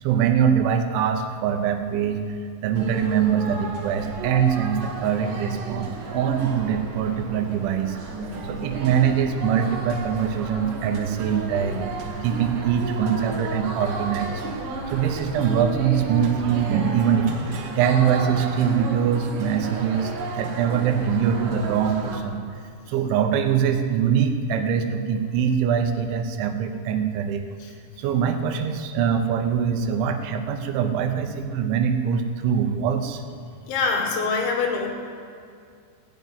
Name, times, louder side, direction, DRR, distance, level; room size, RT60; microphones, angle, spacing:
voice 1, 0.0-2.2 2.6-8.0 8.4-14.4 14.9-17.3 17.8-22.4 22.9-27.5 28.0-33.2, right 8 dB, 80° right, 7 dB, 3.3 m, -23 dB
sound 1, 2.7-22.2, right 3 dB, 60° right, 2.4 m, -33 dB
voice 2, 33.7-34.9, left 4 dB, 75° left, 2 dB, 4.0 m, -24 dB
16.0 x 7.3 x 9.5 m, 2.4 s
omnidirectional pair, 5.4 m